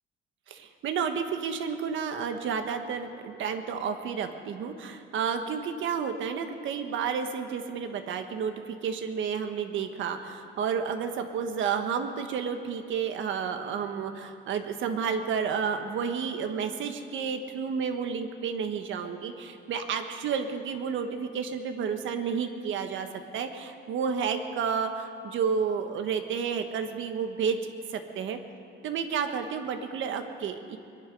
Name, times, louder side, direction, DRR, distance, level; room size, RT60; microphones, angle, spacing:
voice 1, 0.5-23.1 23.3-27.6 27.9-28.4 28.8-30.8, right 6 dB, 70° right, 7 dB, 1.3 m, -31 dB
23.0 x 11.0 x 5.3 m, 2.4 s
cardioid pair, 135°, 21 cm